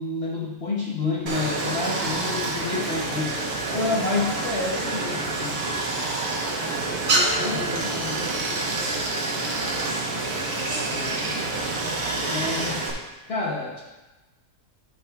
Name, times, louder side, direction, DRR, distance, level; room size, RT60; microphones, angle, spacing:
voice 1, 0.0-3.4 3.7-5.6 7.4-8.2 10.9-11.2 12.2-12.8 13.3-13.8, left 3 dB, 45° left, -4 dB, 1.0 m, -29 dB
Stream, 1.3-12.9, right 2 dB, 70° right, 1.6 m, -27 dB
voice 2, 3.7-4.0 6.6-9.8 10.3-11.6, right 2 dB, 45° right, -5 dB, 2.0 m, -40 dB
11.5 x 4.2 x 3.4 m, 1.1 s
omnidirectional pair, 1.7 m